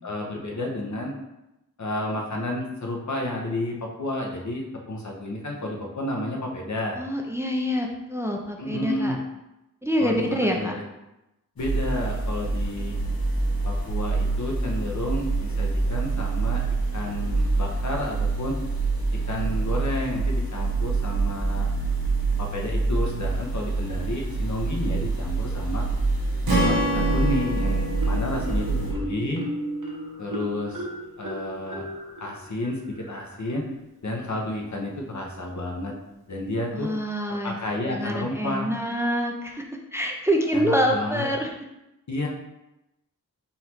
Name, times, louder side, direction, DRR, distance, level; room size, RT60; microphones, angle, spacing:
voice 1, 0.0-1.1 1.8-7.0 8.6-9.2 10.0-10.2 10.5-10.8 11.6-13.0 13.6-16.6 16.9-18.6 19.3-21.7 22.4-25.9 26.5-29.5 30.2-30.8 31.2-31.8 32.2-33.7 34.0-35.9 36.3-36.9 37.3-38.7 40.5-41.3 42.1-42.3, left 1 dB, 55° left, 0 dB, 1.0 m, -31 dB
voice 2, 7.0-9.2 9.8-10.8 28.4-28.6 36.7-37.5 37.8-39.7 39.9-41.5, equal, 5° right, 1 dB, 0.6 m, -26 dB
sound 1, 11.6-28.9, right 3 dB, 75° left, 1.2 m, -26 dB
Strum, 26.5-30.7, equal, 85° right, 1.1 m, -29 dB
Marimba xylophone, 26.6-27.5 28.0-33.5, right 1 dB, 60° right, 1.2 m, -35 dB
4.1 x 2.6 x 4.4 m, 0.92 s
cardioid pair, 45°, 35 cm